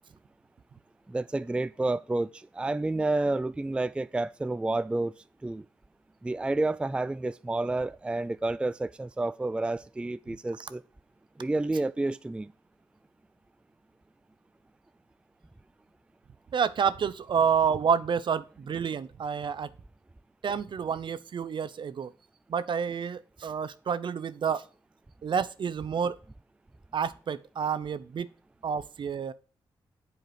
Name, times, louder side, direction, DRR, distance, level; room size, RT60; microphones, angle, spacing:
voice 1, 1.1-5.1 5.4-5.7 6.2-10.8 11.4-12.5, right 2 dB, 10° right, 0.3 m, -30 dB
voice 2, 16.5-19.7 20.4-22.1 22.5-24.6 25.2-26.2 26.9-28.3 28.6-29.3, right 7 dB, 55° right, 0.7 m, -29 dB
7.9 x 4.6 x 5.0 m
cardioid pair, 70°, 9 cm